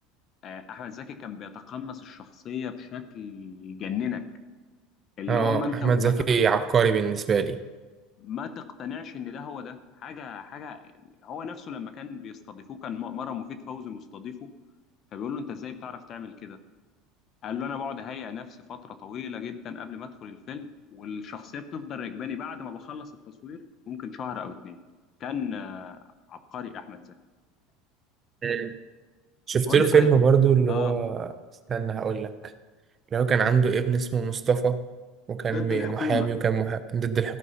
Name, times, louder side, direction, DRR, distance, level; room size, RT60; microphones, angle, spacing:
voice 1, 0.4-4.2 5.2-6.1 8.2-14.3 15.1-16.6 17.4-23.1 23.4-23.6 23.9-24.8 25.2-26.0 26.3-27.1 29.7-30.1 30.7-30.9 35.5-36.3, left 7 dB, 40° left, 10 dB, 0.9 m, -36 dB
voice 2, 5.3-7.6 28.4-28.7 29.5-31.3 31.7-32.3 33.1-34.8 35.3-37.4, right 6 dB, 30° right, 11 dB, 0.6 m, -23 dB
14.5 x 5.4 x 5.6 m, 1.3 s
supercardioid pair, 110°, 0 cm